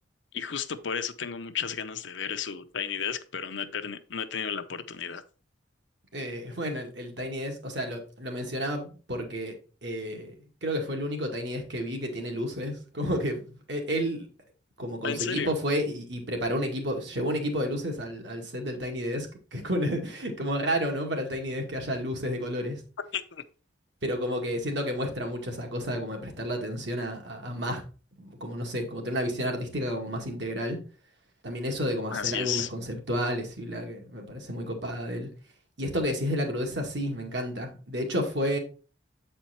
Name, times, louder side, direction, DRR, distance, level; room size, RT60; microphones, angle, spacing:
voice 1, 0.3-5.2 15.0-15.5 23.1-23.4 32.1-32.7, left 7 dB, 70° left, 0.7 m, -33 dB
voice 2, 6.1-9.6 9.8-10.3 10.6-14.3 14.8-22.8 24.0-27.8 28.2-30.8 31.4-35.3 35.8-38.6, equal, 60° right, 1.9 m, -31 dB
8.0 x 4.4 x 4.3 m
head